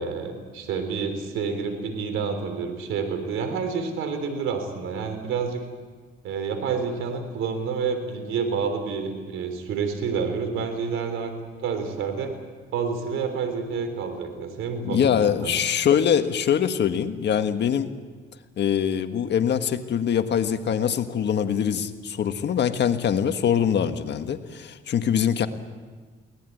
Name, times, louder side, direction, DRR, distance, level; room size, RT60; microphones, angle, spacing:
voice 1, 0.0-5.6 6.2-11.3 11.6-12.3 12.7-15.6, right 5 dB, 90° right, 7 dB, 3.4 m, -29 dB
voice 2, 14.8-17.9 18.6-25.5, left 8 dB, 60° left, 8 dB, 1.6 m, -23 dB
23.0 x 18.0 x 9.3 m, 1.4 s
cardioid pair, 90°, 20 cm